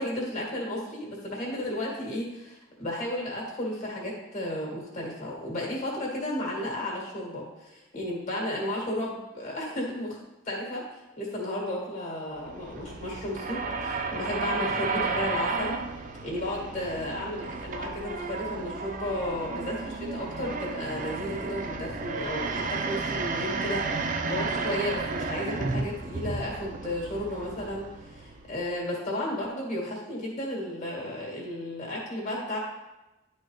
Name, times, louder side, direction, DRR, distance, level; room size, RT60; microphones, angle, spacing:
voice 1, 0.0-10.2 10.5-10.8 11.2-15.8 16.2-32.6, left 1 dB, 35° left, -3 dB, 2.0 m, -33 dB
sound 1, 12.4-28.7, right 4 dB, 40° right, 0.5 m, -33 dB
11.0 x 4.3 x 3.3 m, 1.0 s
head